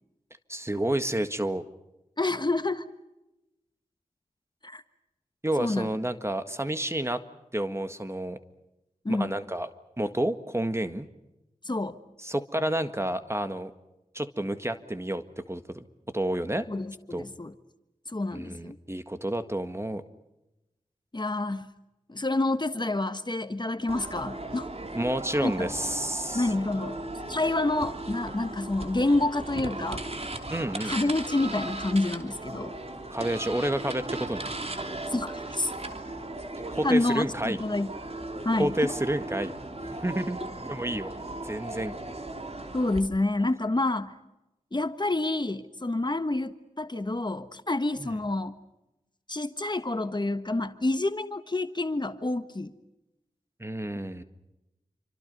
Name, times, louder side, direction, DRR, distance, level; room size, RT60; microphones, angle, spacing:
voice 1, 0.5-1.6 5.4-7.2 7.5-8.4 9.1-9.7 10.0-11.1 12.2-13.7 14.1-15.8 16.1-16.7 17.1-17.2 18.3-20.0 24.9-26.5 30.5-31.1 33.1-34.5 36.7-37.6 38.6-39.5 39.8-40.4 40.6-41.1 41.4-41.9 48.0-48.1 53.6-54.2, right 1 dB, 20° right, 10 dB, 1.7 m, -30 dB
voice 2, 2.2-2.8 4.6-4.8 5.6-5.9 9.0-9.4 11.6-12.0 16.7-17.5 18.1-18.7 21.1-21.7 22.1-24.7 25.4-25.7 26.3-27.0 27.3-30.0 30.8-32.8 35.1-35.7 36.8-37.9 38.4-38.9 42.7-44.1 44.7-48.6 49.3-52.7, left 2 dB, 35° left, 10 dB, 1.4 m, -28 dB
sound 1, 23.9-43.0, right 2 dB, 50° right, 3.1 m, -37 dB
28.5 x 25.5 x 5.5 m, 0.94 s
wide cardioid pair, 55°, 14 cm